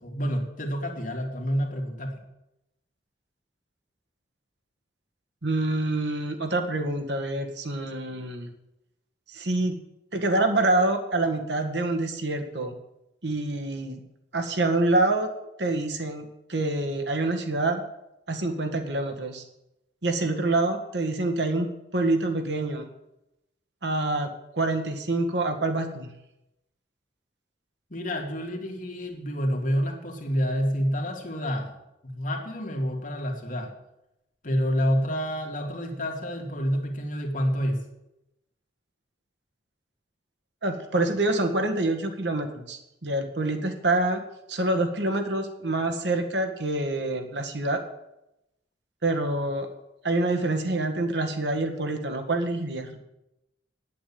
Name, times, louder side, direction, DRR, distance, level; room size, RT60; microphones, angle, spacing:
voice 1, 0.0-2.2 27.9-31.7 32.0-33.7 34.4-37.8, equal, 50° left, 2 dB, 2.4 m, -28 dB
voice 2, 5.4-8.5 9.3-9.8 10.1-12.7 13.2-14.0 14.3-15.3 15.6-17.8 18.3-19.4 20.0-22.9 23.8-26.1 40.6-44.2 44.5-47.8 49.0-49.7 50.0-53.0, right 2 dB, 75° right, 5 dB, 1.7 m, -26 dB
9.2 x 8.6 x 8.7 m, 0.88 s
head